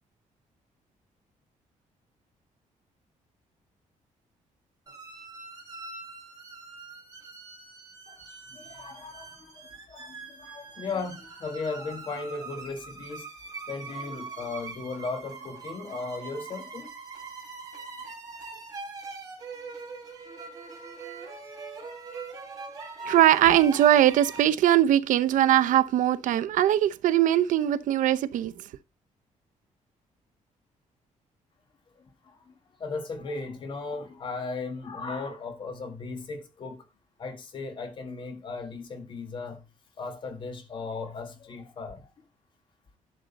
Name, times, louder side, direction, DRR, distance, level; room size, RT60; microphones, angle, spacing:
sound 1, 4.9-24.4, right 4 dB, 30° right, 3.8 m, -42 dB
voice 1, 8.1-13.3 13.7-16.9 32.0-32.5 32.8-36.8 37.2-39.6 40.0-42.1, left 4 dB, 40° left, 1.7 m, -37 dB
voice 2, 23.0-28.7, right 12 dB, 85° right, 0.7 m, -21 dB
11.0 x 6.5 x 4.0 m
cardioid pair, 180°, 13 cm